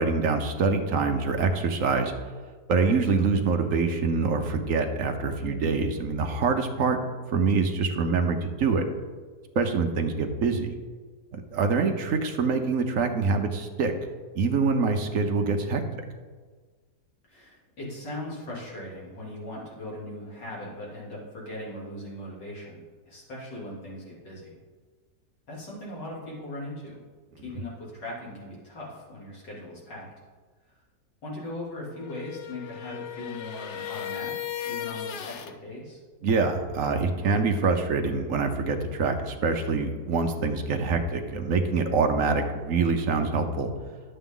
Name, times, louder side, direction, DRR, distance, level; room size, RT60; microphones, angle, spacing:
voice 1, 0.0-2.1 2.7-7.0 7.3-8.8 9.5-10.8 11.3-13.9 14.3-15.8 36.2-43.7, right 4 dB, 55° right, 5 dB, 1.1 m, -25 dB
voice 2, 17.3-24.6 25.5-27.0 27.4-30.1 31.2-36.0, left 1 dB, 80° left, -5 dB, 3.6 m, -39 dB
sound 1, 31.9-35.6, left 10 dB, 65° left, 0.7 m, -36 dB
10.5 x 8.1 x 3.8 m, 1.4 s
omnidirectional pair, 1.9 m